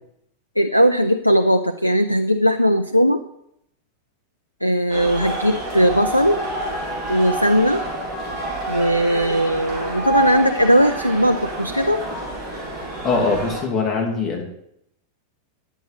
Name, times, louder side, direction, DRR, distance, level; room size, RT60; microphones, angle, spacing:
voice 1, 0.6-3.2 4.6-6.4 7.1-7.8 8.7-12.1, equal, 90° left, 9 dB, 0.4 m, -18 dB
sound 1, 4.9-13.6, right 1 dB, 25° right, 4.5 m, -28 dB
voice 2, 13.0-14.4, left 4 dB, 20° left, -1 dB, 2.7 m, -22 dB
11.0 x 8.0 x 4.1 m, 0.75 s
figure-of-eight pair, 90°, 0 cm